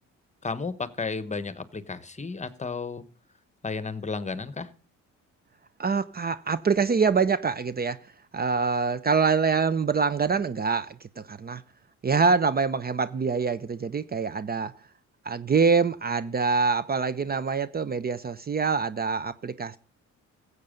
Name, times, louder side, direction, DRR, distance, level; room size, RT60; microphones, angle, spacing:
voice 1, 0.4-3.0 3.6-4.7, left 4 dB, 25° left, 1.2 m, -33 dB
voice 2, 5.8-8.0 8.3-11.6 12.0-14.7 15.2-19.8, right 5 dB, 30° right, 0.7 m, -25 dB
15.0 x 8.1 x 5.1 m
cardioid pair, 90°, 30 cm